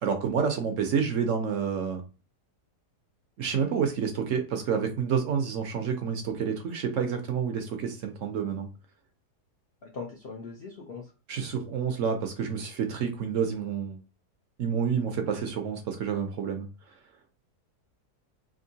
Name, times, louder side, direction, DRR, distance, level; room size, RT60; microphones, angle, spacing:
voice 1, 0.0-2.0 3.4-8.7 11.3-14.0 14.6-16.7, right 6 dB, 65° right, 5 dB, 0.8 m, -29 dB
voice 2, 9.8-11.0, left 4 dB, 65° left, 0 dB, 0.5 m, -40 dB
3.6 x 2.7 x 2.7 m, 0.33 s
omnidirectional pair, 1.8 m